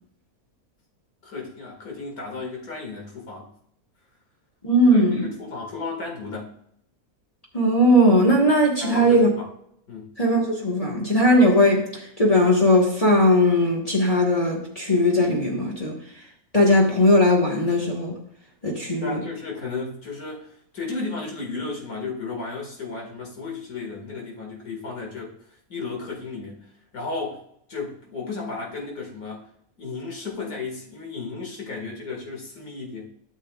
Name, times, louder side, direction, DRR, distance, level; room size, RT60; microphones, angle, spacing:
voice 1, 1.2-3.5 4.9-6.5 8.8-9.5 9.9-10.1 19.0-25.3 25.7-26.7 26.9-27.4 27.7-29.5 29.8-33.1, left 4 dB, 90° left, -1 dB, 2.5 m, -34 dB
voice 2, 4.6-5.3 7.5-9.3 10.2-16.0 16.5-18.1 18.6-19.2, left 1 dB, 25° left, -2 dB, 1.5 m, -19 dB
12.5 x 6.8 x 2.4 m, 0.71 s
omnidirectional pair, 1.5 m